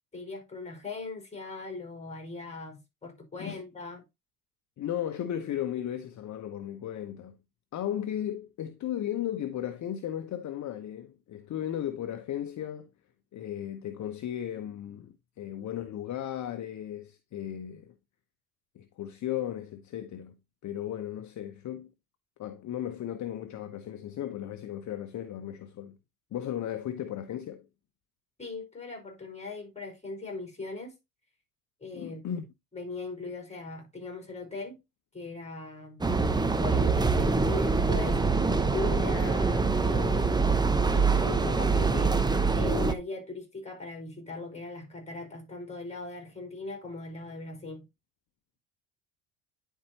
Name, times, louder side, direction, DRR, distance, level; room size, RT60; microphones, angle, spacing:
voice 1, 0.1-4.1 28.4-30.9 31.8-32.3 32.7-34.8 35.1-36.0 36.6-40.3 40.8-47.9, left 3 dB, 15° left, 5.2 m, -39 dB
voice 2, 4.8-7.4 7.7-12.9 13.3-17.9 18.7-20.3 20.6-21.9 22.4-26.0 26.3-27.6 31.9-32.5, left 11 dB, 45° left, 0.9 m, -35 dB
sound 1, 36.0-42.9, right 4 dB, 10° right, 0.9 m, -25 dB
10.5 x 4.6 x 3.0 m
supercardioid pair, 75°, 39 cm